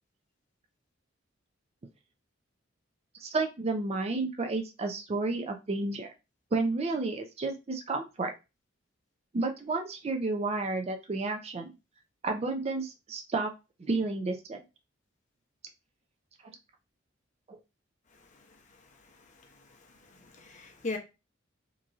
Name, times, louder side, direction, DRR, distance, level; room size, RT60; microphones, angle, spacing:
voice 1, 3.2-6.1 6.5-8.3 9.3-11.7 12.2-13.5 13.8-14.6 16.4-16.5 17.5-17.6, right 3 dB, 30° right, 0.4 m, -31 dB
voice 2, 18.1-21.0, left 3 dB, 40° left, 0.6 m, -42 dB
3.0 x 2.5 x 2.4 m
head